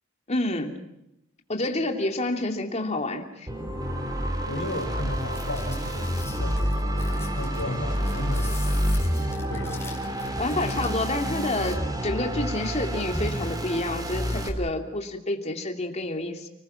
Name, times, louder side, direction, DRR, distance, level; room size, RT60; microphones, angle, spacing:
voice 1, 0.3-0.8 1.5-3.5 10.4-16.5, left 2 dB, 35° left, 4 dB, 2.9 m, -28 dB
sound 1, 3.5-14.5, equal, 20° right, 3.4 m, -28 dB
voice 2, 4.5-8.8 9.5-9.9, left 1 dB, 80° left, -3 dB, 5.9 m, -35 dB
sound 2, 5.1-11.0, left 5 dB, 15° left, 5.8 m, -45 dB
30.0 x 21.0 x 6.0 m, 0.84 s
head